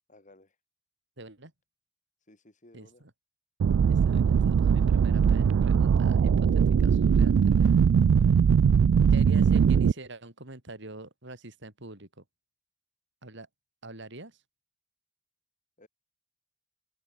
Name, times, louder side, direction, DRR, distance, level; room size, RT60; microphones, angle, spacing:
voice 1, 0.1-0.5 2.3-3.0 9.3-9.4 15.8-15.9, left 2 dB, 40° left, 4.7 m, -56 dB
voice 2, 1.2-1.5 2.7-3.1 3.9-7.8 9.1-12.2 13.2-13.5 13.8-14.4, right 2 dB, 65° right, 4.6 m, -45 dB
sound 1, 3.6-9.9, right 7 dB, 85° right, 0.3 m, -21 dB
open air
head